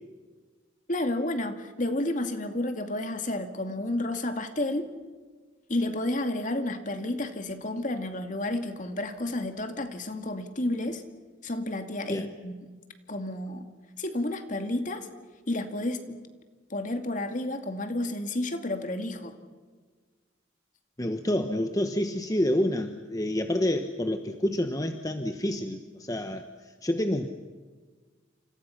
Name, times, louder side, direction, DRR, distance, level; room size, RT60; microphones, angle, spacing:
voice 1, 0.9-4.9 5.7-11.0 11.4-12.5 13.1-13.7 14.0-15.1 15.5-16.2 16.7-19.4, left 1 dB, 40° left, 7 dB, 2.4 m, -31 dB
voice 2, 21.0-27.3, left 1 dB, 20° left, 7 dB, 1.1 m, -28 dB
29.5 x 27.5 x 5.9 m, 1.4 s
head